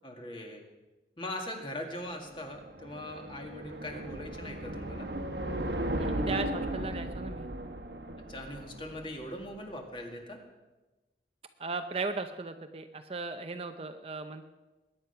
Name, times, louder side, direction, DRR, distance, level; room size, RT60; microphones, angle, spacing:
voice 1, 0.0-0.6 1.2-5.1 8.3-10.4, left 1 dB, 30° left, 2 dB, 2.2 m, -41 dB
sound 1, 2.1-9.5, right 1 dB, 75° right, 1.2 m, -36 dB
voice 2, 6.0-7.5 11.6-14.4, right 3 dB, 35° right, 7 dB, 0.7 m, -37 dB
21.5 x 9.9 x 5.8 m, 1.2 s
head